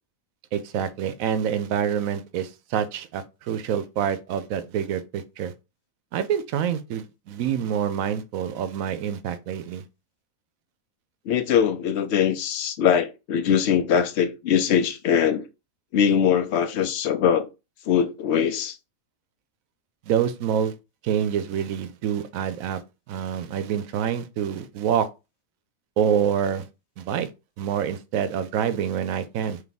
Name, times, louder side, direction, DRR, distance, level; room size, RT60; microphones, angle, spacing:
voice 1, 0.5-5.5 6.1-9.8 20.1-20.7 21.0-22.8 23.1-25.1 26.0-26.7 27.0-27.3 27.6-29.6, right 8 dB, 85° right, 1.0 m, -26 dB
voice 2, 11.3-15.4 15.9-17.5 17.9-18.8, left 8 dB, 65° left, 0.8 m, -22 dB
3.4 x 3.0 x 4.0 m
omnidirectional pair, 1.4 m